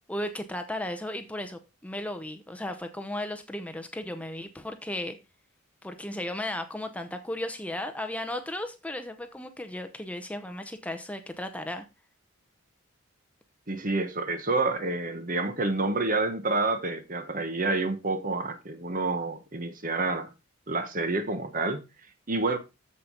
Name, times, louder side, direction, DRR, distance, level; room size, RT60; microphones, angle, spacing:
voice 1, 0.1-5.1 5.8-11.8, left 1 dB, 5° left, 0.8 m, -35 dB
voice 2, 13.7-20.3 20.7-21.8 22.3-22.6, right 3 dB, 40° right, 1.1 m, -28 dB
7.8 x 7.5 x 3.9 m
head